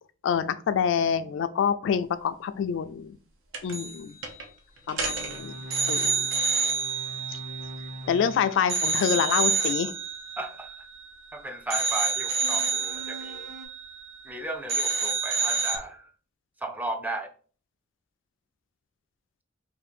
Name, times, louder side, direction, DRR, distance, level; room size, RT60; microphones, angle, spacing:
voice 1, 0.2-3.1 3.6-4.2 4.9-5.5 5.9-6.3 7.3-7.4 8.1-9.9, left 7 dB, 65° left, 0.3 m, -26 dB
sound 1, 3.5-4.0 4.2-4.4 4.9-8.3 8.7-11.3 11.7-14.4 14.7-15.8, right 4 dB, 75° right, 0.7 m, -28 dB
sound 2, 5.1-8.5 12.4-13.7, equal, 45° right, 1.2 m, -42 dB
voice 2, 10.4-10.7 11.3-13.5 14.3-16.1 16.6-17.3, right 2 dB, 10° right, 0.4 m, -35 dB
2.7 x 2.5 x 4.2 m
head